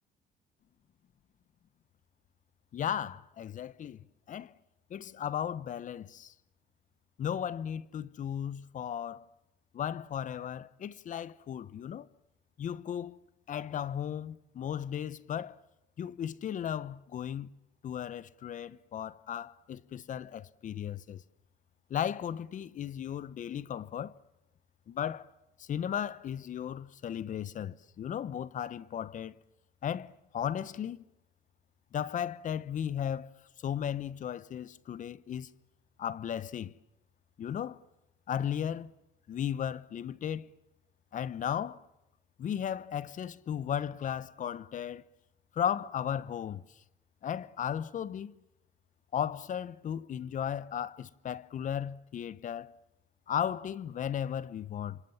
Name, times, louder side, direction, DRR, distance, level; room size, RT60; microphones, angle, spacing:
voice 1, 2.7-4.5 4.9-6.3 7.2-9.2 9.7-12.1 12.6-13.2 13.5-15.6 16.0-17.5 17.8-21.2 21.9-24.1 24.9-25.3 25.6-29.4 29.8-31.0 31.9-33.3 33.6-35.5 36.0-36.7 37.4-37.8 38.3-38.9 39.3-40.5 41.1-41.8 42.4-45.0 45.5-46.6 47.2-48.4 49.1-52.7 53.3-55.0, left 9 dB, 50° left, 1.1 m, -35 dB
29.0 x 26.0 x 7.3 m
cardioid pair, 110°, 17 cm